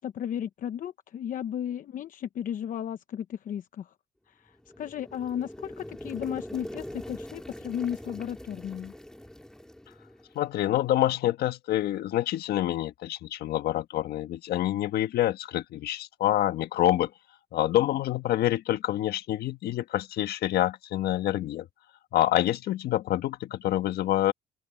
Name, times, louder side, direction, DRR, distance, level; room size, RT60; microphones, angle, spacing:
voice 1, 0.0-3.9 4.3-8.9, left 9 dB, 50° left, 0.9 m, -34 dB
sound 1, 4.5-10.6, left 1 dB, 5° left, 2.4 m, -43 dB
voice 2, 10.3-17.1 17.5-21.7 22.1-24.3, left 13 dB, 70° left, 1.5 m, -27 dB
open air
cardioid pair, 110°, 17 cm